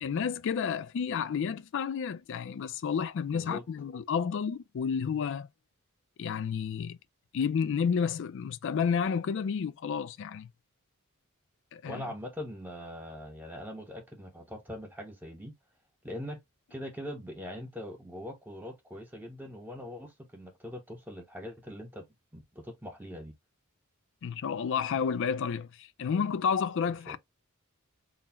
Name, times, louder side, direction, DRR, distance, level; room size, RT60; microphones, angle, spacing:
voice 1, 0.0-5.5 6.2-7.0 7.3-10.5 11.7-12.0 24.2-27.2, left 6 dB, 60° left, 0.3 m, -31 dB
voice 2, 3.3-3.6 11.9-15.5 16.0-16.4 16.7-22.1 22.3-23.3 27.1-27.2, left 1 dB, 10° right, 0.6 m, -42 dB
3.8 x 2.0 x 4.0 m
head